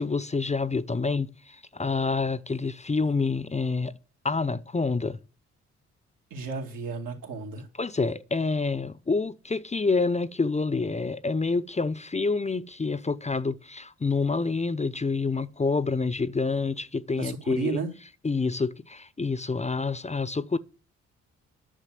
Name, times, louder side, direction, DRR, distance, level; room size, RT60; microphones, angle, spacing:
voice 1, 0.0-3.9 4.2-5.2 7.8-17.8 18.2-20.6, left 4 dB, 20° left, 0.7 m, -27 dB
voice 2, 6.3-7.7 17.2-17.9, right 4 dB, 75° right, 2.3 m, -33 dB
10.0 x 6.6 x 7.6 m
hypercardioid pair, 45°, 33 cm